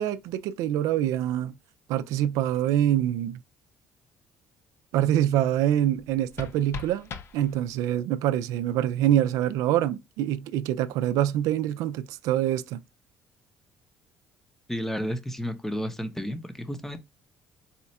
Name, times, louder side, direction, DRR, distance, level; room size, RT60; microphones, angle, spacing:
voice 1, 0.0-1.5 1.9-3.4 4.9-7.1 7.3-12.8, right 11 dB, 85° right, 0.3 m, -25 dB
sound 1, 5.9-8.0, left 5 dB, 50° left, 0.6 m, -41 dB
voice 2, 14.7-17.0, equal, 5° left, 0.6 m, -32 dB
4.2 x 2.4 x 4.1 m
cardioid pair, 110°, 6 cm